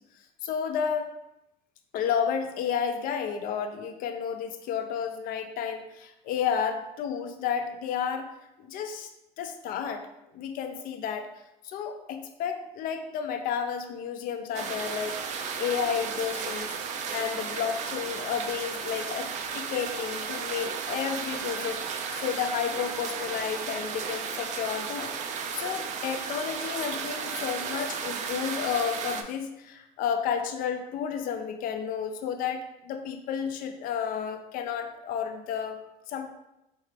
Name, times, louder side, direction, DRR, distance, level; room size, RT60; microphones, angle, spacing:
voice 1, 0.4-1.2 1.9-8.3 8.6-9.1 9.4-10.1 10.3-11.3 11.6-16.7 17.1-21.8 22.1-25.1 25.5-35.8 36.1-36.3, left 7 dB, 60° left, 6 dB, 0.5 m, -31 dB
sound 1, 14.5-29.2, right 6 dB, 45° right, 0.4 m, -34 dB
4.4 x 2.4 x 3.2 m, 0.88 s
cardioid pair, 120°, 17 cm